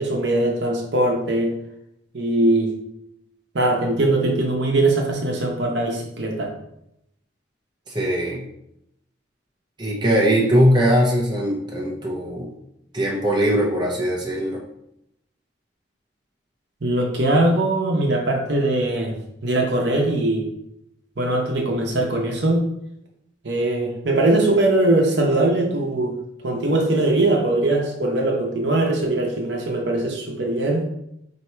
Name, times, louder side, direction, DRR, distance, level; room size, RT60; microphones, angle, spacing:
voice 1, 0.0-1.6 2.1-2.7 3.5-6.5 16.8-19.1 19.4-20.5 21.2-22.6 23.4-26.2 26.4-30.8, right 2 dB, 65° right, 1 dB, 0.9 m, -21 dB
voice 2, 7.9-8.4 9.8-12.5 12.9-14.6, equal, 25° right, -3 dB, 0.8 m, -20 dB
4.2 x 2.8 x 4.5 m, 0.80 s
head